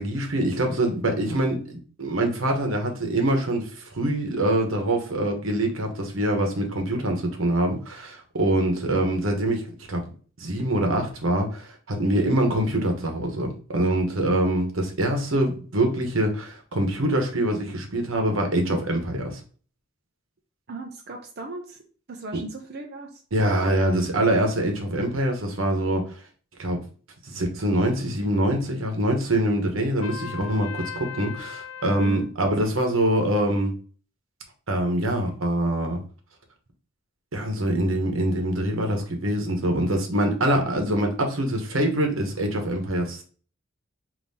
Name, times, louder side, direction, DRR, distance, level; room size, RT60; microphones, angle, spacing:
voice 1, 0.0-10.0 10.4-19.4 23.3-26.1 26.6-26.8 27.2-33.7 34.7-36.0 37.3-43.2, right 1 dB, 85° right, 3 dB, 1.1 m, -24 dB
voice 2, 20.7-21.8 22.1-23.2 32.0-32.3, right 1 dB, 55° right, 2 dB, 0.6 m, -37 dB
Trumpet, 30.0-32.3, left 7 dB, 90° left, 0.4 m, -38 dB
5.3 x 2.8 x 2.7 m, 0.40 s
head